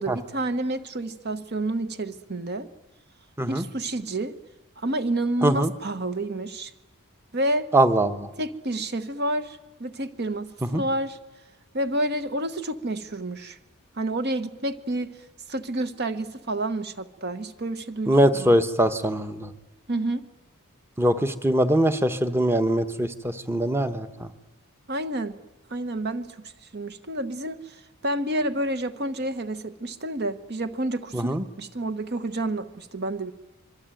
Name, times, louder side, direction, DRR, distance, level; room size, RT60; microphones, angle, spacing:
voice 1, 0.0-2.7 3.5-4.3 4.8-6.7 7.3-7.7 8.4-11.2 11.7-13.6 14.0-15.1 15.5-18.5 19.9-20.2 24.9-25.4 25.7-33.3, right 1 dB, 45° right, 11 dB, 1.2 m, -29 dB
voice 2, 5.4-5.7 7.7-8.3 10.7-10.8 18.1-19.5 21.0-24.3 31.1-31.4, right 1 dB, 10° right, 10 dB, 1.1 m, -22 dB
25.5 x 23.0 x 9.1 m, 1.1 s
head